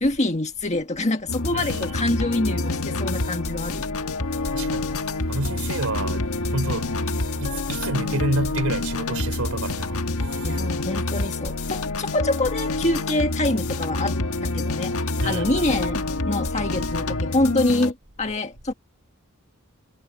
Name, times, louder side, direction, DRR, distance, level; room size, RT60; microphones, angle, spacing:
voice 1, 0.0-4.1 10.4-14.9 15.2-18.7, left 2 dB, 30° left, 1.6 m, -25 dB
sound 1, 1.3-17.9, left 2 dB, 80° left, 1.6 m, -27 dB
voice 2, 1.5-1.9 4.4-5.0 5.3-6.3 6.5-6.9 7.4-10.5 15.2-15.6, right 2 dB, 85° right, 4.3 m, -29 dB
head